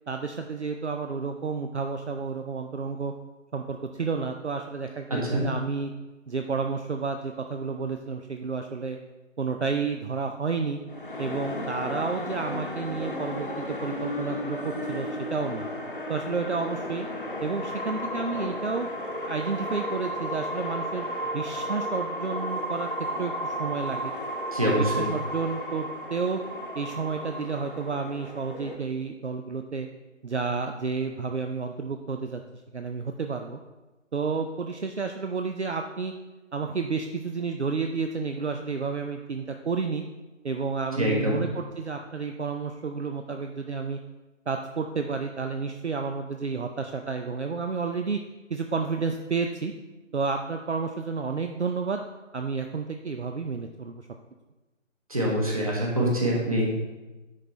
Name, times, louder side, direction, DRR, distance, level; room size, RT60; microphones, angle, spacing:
voice 1, 0.1-3.1 3.5-5.9 6.3-9.0 9.4-10.8 11.2-15.7 16.1-17.1 17.4-18.9 19.3-21.1 21.3-22.9 23.2-24.1 24.6-26.4 26.7-29.9 30.2-32.4 32.7-33.6 34.1-36.1 36.5-40.0 40.4-44.0 44.5-48.2 48.5-49.7 50.1-52.0 52.3-54.0, right 4 dB, 60° right, 4 dB, 0.6 m, -31 dB
voice 2, 5.1-5.4 24.5-25.1 41.0-41.4 55.1-56.8, equal, 30° right, -3 dB, 1.4 m, -25 dB
sound 1, 10.9-28.8, equal, 40° left, 1.0 m, -33 dB
9.8 x 4.1 x 4.4 m, 1.1 s
figure-of-eight pair, 165°, 39 cm